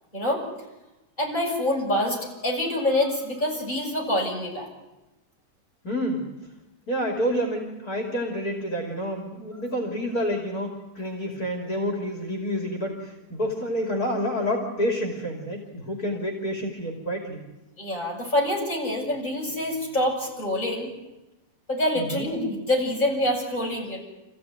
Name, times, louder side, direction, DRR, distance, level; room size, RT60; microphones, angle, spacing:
voice 1, 1.2-4.7 17.8-20.9 21.7-24.0, left 1 dB, 30° left, -3 dB, 7.1 m, -26 dB
voice 2, 5.8-6.3 6.9-17.4 22.0-22.3, equal, 65° left, 0 dB, 3.5 m, -28 dB
27.5 x 15.5 x 9.5 m, 1.0 s
omnidirectional pair, 1.6 m